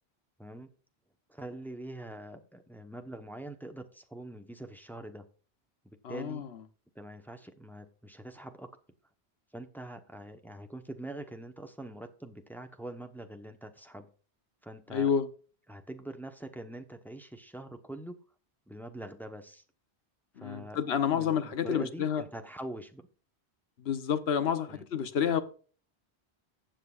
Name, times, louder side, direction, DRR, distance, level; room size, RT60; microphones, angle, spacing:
voice 1, 0.4-0.7 1.3-5.3 6.1-6.5 6.9-8.7 9.5-14.1 14.6-15.1 15.7-18.2 18.7-19.6 20.4-20.8 21.1-23.1 24.7-24.8, right 1 dB, ahead, 0.9 m, -44 dB
voice 2, 6.0-6.5 14.9-15.3 20.4-22.2 23.8-25.4, left 8 dB, 75° left, 1.1 m, -29 dB
15.0 x 7.8 x 2.4 m
omnidirectional pair, 1.1 m